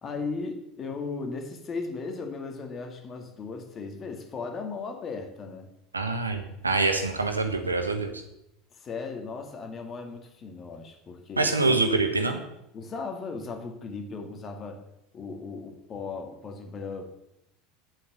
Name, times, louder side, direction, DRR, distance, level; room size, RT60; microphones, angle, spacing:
voice 1, 0.0-5.7 8.7-12.0 12.7-14.8 15.1-17.0, left 4 dB, 30° left, 5 dB, 2.2 m, -36 dB
voice 2, 5.9-8.2 11.4-12.4, right 3 dB, 85° right, 6 dB, 1.3 m, -25 dB
9.8 x 8.3 x 6.9 m, 0.83 s
figure-of-eight pair, 75°, 0 cm